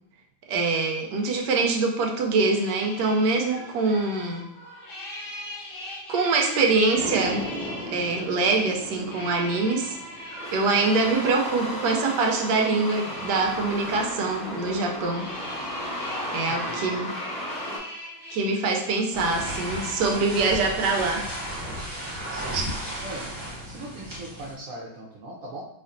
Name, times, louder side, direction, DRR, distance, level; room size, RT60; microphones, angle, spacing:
voice 1, 0.5-4.4 6.1-7.5 7.9-10.0 10.5-15.3 16.3-17.1 18.3-21.3 22.5-22.6, right 3 dB, 85° right, 2 dB, 1.2 m, -24 dB
sound 1, 2.0-21.5, left 1 dB, 55° left, 0.6 m, -41 dB
sound 2, 6.9-17.8, equal, 5° left, 0.4 m, -35 dB
voice 2, 16.5-17.0 22.3-22.6 23.0-23.3 23.6-25.6, right 1 dB, 65° right, -3 dB, 0.9 m, -40 dB
sound 3, 19.1-24.5, equal, 35° right, 1.1 m, -34 dB
4.2 x 2.8 x 2.5 m, 0.80 s
omnidirectional pair, 1.8 m